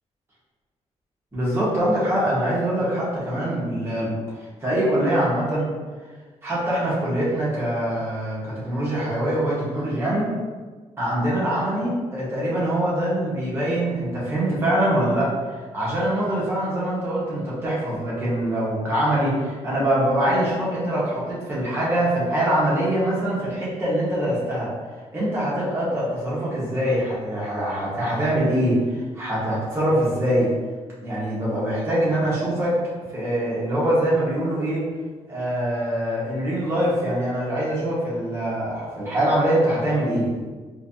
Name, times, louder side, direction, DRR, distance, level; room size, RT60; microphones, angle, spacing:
voice 1, 1.3-4.2 4.6-5.7 6.4-10.3 11.0-24.7 25.1-30.5 31.0-32.8 33.1-34.9 35.3-40.3, right 1 dB, 20° right, -8 dB, 1.3 m, -23 dB
4.1 x 2.7 x 2.8 m, 1.4 s
wide cardioid pair, 165°, 12 cm